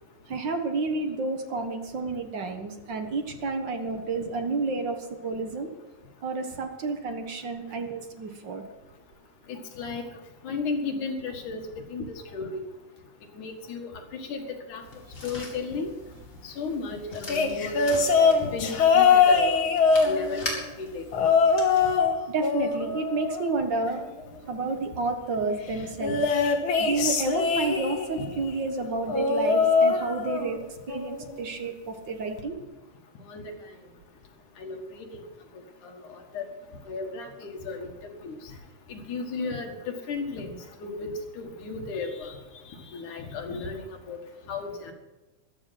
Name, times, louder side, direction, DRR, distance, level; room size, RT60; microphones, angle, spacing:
voice 1, 0.3-5.7 6.2-8.6 22.3-24.0 24.5-26.2 26.8-30.6 30.9-32.6, right 3 dB, 50° right, 5 dB, 1.6 m, -30 dB
voice 2, 9.5-10.1 10.4-12.1 12.3-12.6 13.4-14.8 15.2-15.9 16.4-19.7 20.0-20.5 20.8-21.1 25.7-25.8 26.1-26.2 28.2-28.3 33.3-33.4 34.6-35.2 35.8-36.4 36.9-37.9 38.2-38.5 38.9-42.4 42.9-44.2 44.5-44.9, left 4 dB, 85° left, 3 dB, 3.3 m, -34 dB
Gun Unholstered-Holstered, 14.8-21.9, left 2 dB, 25° left, 3.3 m, -41 dB
sound 1, 17.3-20.6 21.1-22.1 22.4-24.0 26.0-28.2 29.1-30.6 30.9-31.3 32.4-32.5, left 5 dB, 50° left, 1.8 m, -22 dB
15.0 x 12.0 x 5.9 m, 1.1 s
omnidirectional pair, 3.4 m